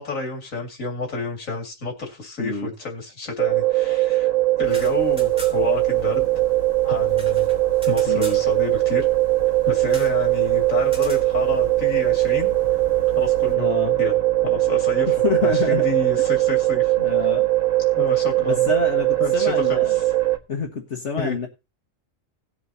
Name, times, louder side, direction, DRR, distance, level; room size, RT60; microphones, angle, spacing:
voice 1, 0.0-4.3 4.6-6.3 6.8-7.5 7.9-9.1 9.7-12.5 13.1-15.1 15.4-16.9 17.9-18.7 19.2-20.0 21.2-21.4, left 3 dB, 90° left, 1 dB, 2.8 m, -30 dB
voice 2, 2.4-2.7 8.1-8.4 13.6-14.0 15.1-15.9 17.0-17.5 18.5-20.0 20.5-21.5, left 5 dB, 60° left, 3 dB, 1.7 m, -27 dB
sound 1, 3.4-20.4, right 17 dB, 85° right, 2.2 m, -20 dB
sound 2, 4.6-13.6, left 1 dB, 30° left, 4.6 m, -40 dB
sound 3, 4.6-5.8 6.1-6.2 6.4-8.4 9.9-10.2 10.8-11.3, equal, 5° right, 3.1 m, -40 dB
18.0 x 7.9 x 2.8 m, 0.27 s
omnidirectional pair, 1.3 m